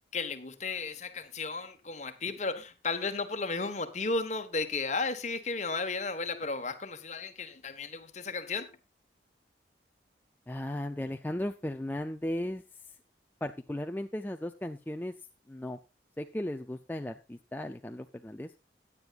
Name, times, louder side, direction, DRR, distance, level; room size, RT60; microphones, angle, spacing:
voice 1, 0.1-8.7, left 3 dB, 40° left, 1.3 m, -34 dB
voice 2, 10.5-12.6 13.4-15.1 15.5-15.8 16.2-18.5, left 1 dB, 10° left, 0.4 m, -36 dB
16.5 x 9.8 x 2.5 m
head